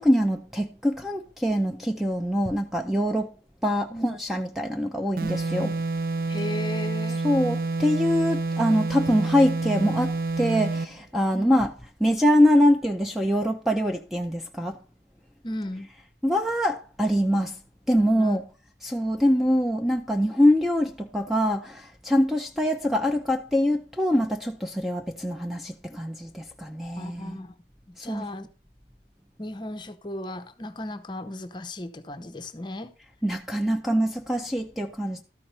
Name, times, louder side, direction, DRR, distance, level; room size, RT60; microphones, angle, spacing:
voice 1, 0.0-3.3 3.6-5.7 7.2-11.7 12.0-14.8 16.2-17.6 17.9-18.4 18.8-27.4 28.0-28.3 33.2-35.2, equal, ahead, 0.5 m, -24 dB
sound 1, 5.2-11.0, right 3 dB, 55° right, 0.4 m, -28 dB
voice 2, 6.3-7.2 11.3-11.7 15.4-15.9 18.2-18.4 27.0-27.5 27.9-28.5 29.4-32.9, left 1 dB, 25° left, 0.8 m, -35 dB
13.0 x 4.7 x 5.6 m
head